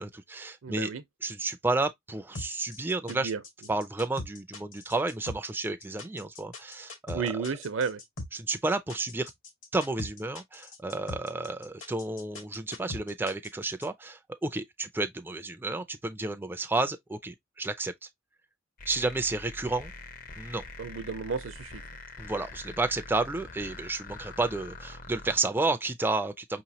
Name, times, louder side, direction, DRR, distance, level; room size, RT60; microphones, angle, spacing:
voice 1, 0.0-0.9 1.2-3.3 3.7-7.5 8.3-9.3 9.7-17.9 18.9-19.9 20.4-20.6 22.2-26.6, right 2 dB, 10° right, 0.3 m, -31 dB
voice 2, 0.6-1.0 3.1-3.4 7.1-8.0 20.8-21.8, right 5 dB, 75° right, 0.6 m, -32 dB
sound 1, 2.3-13.9, left 2 dB, 75° left, 1.6 m, -41 dB
sound 2, 18.8-25.4, left 3 dB, 45° left, 0.6 m, -44 dB
5.4 x 3.0 x 2.7 m
head